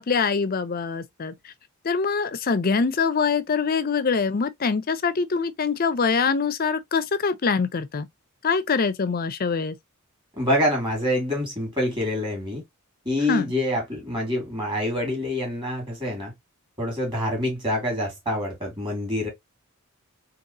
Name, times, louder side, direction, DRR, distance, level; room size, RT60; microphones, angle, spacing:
voice 1, 0.0-1.3 1.8-8.1 8.4-9.7 13.3-13.5, left 5 dB, 45° left, 0.5 m, -24 dB
voice 2, 10.4-12.6 13.1-16.3 16.8-19.3, left 1 dB, 25° right, 2.0 m, -26 dB
4.0 x 2.9 x 2.8 m
head